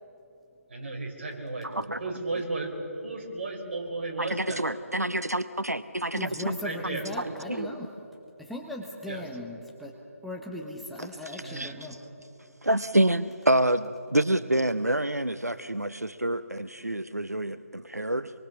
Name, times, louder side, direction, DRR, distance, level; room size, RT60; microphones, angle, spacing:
voice 1, 0.7-1.7 2.0-2.8 3.0-4.6 6.6-7.1 9.1-9.2 11.4-11.7, right 3 dB, 45° right, 1 dB, 5.1 m, -34 dB
voice 2, 1.6-2.0 4.2-6.6 7.5-7.8 11.0-11.9 12.6-18.3, right 1 dB, 85° right, 14 dB, 0.8 m, -27 dB
voice 3, 6.2-7.9 8.4-9.9 10.2-12.0, left 1 dB, ahead, -2 dB, 1.1 m, -38 dB
25.5 x 24.0 x 7.1 m, 2.8 s
figure-of-eight pair, 145°, 8 cm